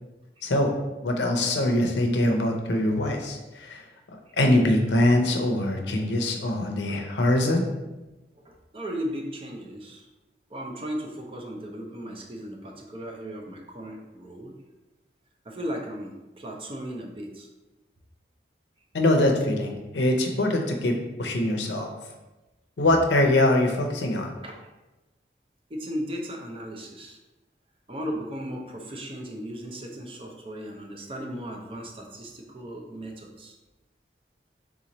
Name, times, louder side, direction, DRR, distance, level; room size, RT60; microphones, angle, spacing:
voice 1, 0.4-0.7 1.0-7.6 18.9-21.9 22.8-24.3, left 1 dB, 85° left, 3 dB, 0.7 m, -23 dB
voice 2, 8.3-10.1 10.5-14.5 15.4-17.5 24.4-24.6 25.7-27.2 27.9-33.6, equal, 30° right, 1 dB, 0.5 m, -36 dB
3.7 x 3.0 x 3.9 m, 1.1 s
head